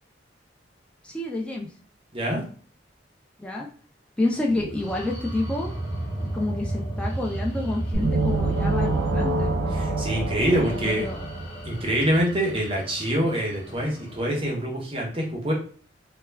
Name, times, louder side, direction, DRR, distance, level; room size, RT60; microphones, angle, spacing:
voice 1, 1.0-1.7 3.4-3.7 4.2-5.7 6.3-9.6 10.6-11.3, left 2 dB, 5° left, -1 dB, 0.3 m, -29 dB
sound 1, 4.5-14.2, right 1 dB, 30° left, 1.4 m, -33 dB
sound 2, 7.9-11.7, right 2 dB, 75° right, 0.5 m, -26 dB
voice 2, 9.7-11.1 11.6-15.5, right 1 dB, 30° right, -2 dB, 0.8 m, -25 dB
2.2 x 2.2 x 3.2 m, 0.43 s
head